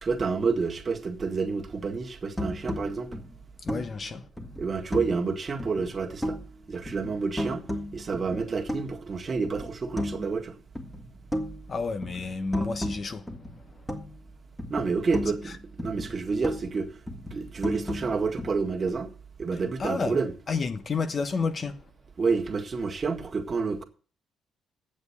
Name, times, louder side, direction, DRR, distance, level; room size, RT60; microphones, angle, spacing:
voice 1, 0.0-3.1 4.6-6.4 6.7-7.6 7.9-10.6 14.7-16.9 17.3-19.1 19.4-20.3 22.2-23.8, right 4 dB, 40° right, 1.9 m, -29 dB
sound 1, 2.3-5.3 5.6-6.6 6.9-9.1 9.4-10.4 10.8-14.3 14.6-16.8 17.1-18.9, left 1 dB, 10° left, 2.0 m, -35 dB
voice 2, 3.6-4.3 11.7-13.9 15.5-15.6 19.5-20.2 20.5-21.9, left 4 dB, 40° left, 1.0 m, -31 dB
8.9 x 7.3 x 8.4 m
cardioid pair, 90°, 0 cm